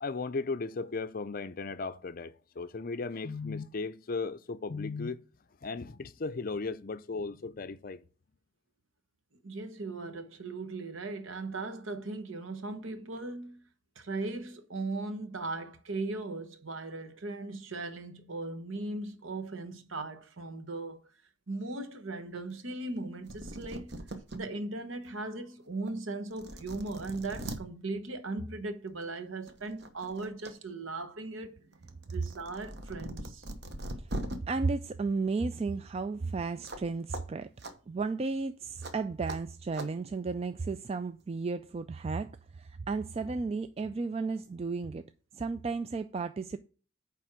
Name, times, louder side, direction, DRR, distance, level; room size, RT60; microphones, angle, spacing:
voice 1, 0.0-5.2 5.6-8.0, left 4 dB, 45° left, 0.5 m, -36 dB
voice 2, 9.4-13.6 14.0-21.0 21.5-24.0 24.3-31.6 32.1-33.4, right 2 dB, 70° right, 1.1 m, -38 dB
sound 1, 23.0-23.1 23.3-24.4 24.9-25.0 25.9-26.0 26.3-27.6 28.9-29.1 29.5-30.5 30.9-34.4 36.6-36.9 37.1-37.2 37.6-37.7 38.8-38.9 39.3-39.4 39.7-39.9, right 1 dB, 55° right, 1.1 m, -40 dB
voice 3, 34.5-37.5 37.9-45.0 45.3-46.6, right 4 dB, 30° right, 0.3 m, -33 dB
9.2 x 3.6 x 6.0 m
head